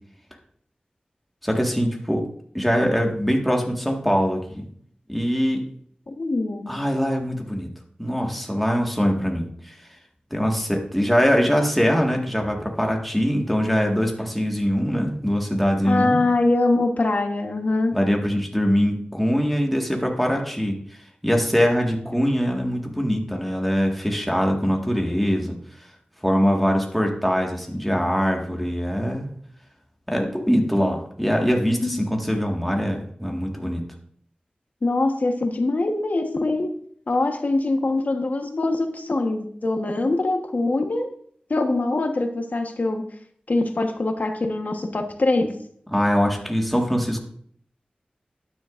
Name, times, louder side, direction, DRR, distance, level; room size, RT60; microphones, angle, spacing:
voice 1, 1.4-2.3 2.5-4.6 5.1-5.7 6.7-7.7 8.0-9.7 10.3-16.2 17.9-20.8 21.2-25.5 26.2-29.3 30.1-33.8 45.9-47.2, equal, ahead, 1 dB, 1.8 m, -22 dB
voice 2, 6.1-6.7 15.8-17.9 31.8-32.0 34.8-36.7 37.1-41.1 41.5-43.0 43.5-45.5, left 2 dB, 65° left, 5 dB, 1.3 m, -23 dB
12.0 x 9.9 x 2.6 m, 0.63 s
wide cardioid pair, 75°, 3 cm